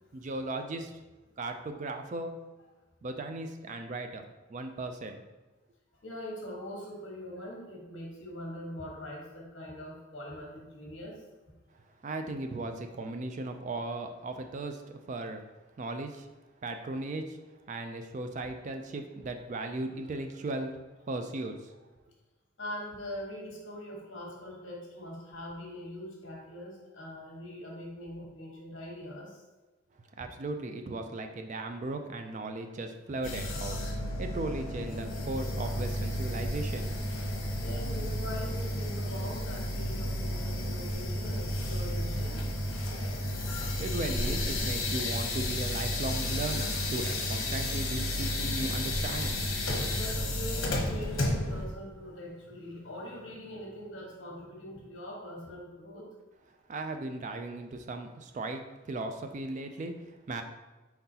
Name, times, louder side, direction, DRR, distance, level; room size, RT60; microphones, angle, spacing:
voice 1, 0.1-0.9 1.4-2.3 3.0-4.2 4.5-5.2 12.0-15.4 15.8-16.3 16.6-17.4 17.7-20.7 21.1-21.7 30.2-33.8 34.2-36.9 43.6-49.4 56.7-60.4, right 2 dB, 35° right, 6 dB, 0.3 m, -37 dB
voice 2, 6.0-11.2 22.6-29.4 37.6-42.4 49.9-56.1, equal, 65° left, -2 dB, 1.2 m, -42 dB
sound 1, 33.2-51.7, left 1 dB, 80° left, 0.9 m, -32 dB
4.6 x 3.8 x 2.7 m, 1.2 s
head